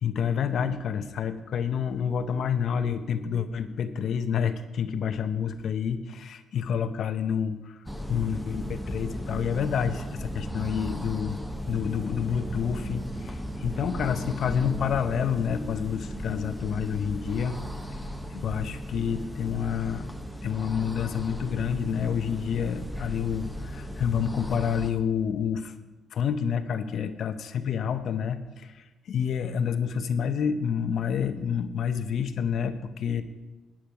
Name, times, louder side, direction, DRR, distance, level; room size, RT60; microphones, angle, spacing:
voice 1, 0.0-7.8 8.1-11.4 11.7-17.6 17.9-18.0 18.3-20.1 20.4-25.7 26.1-33.2, left 7 dB, 65° left, 10 dB, 0.7 m, -28 dB
sound 1, 7.9-24.9, equal, ahead, 0.9 m, -36 dB
12.0 x 9.2 x 4.7 m, 1.2 s
cardioid pair, 90°, 0 cm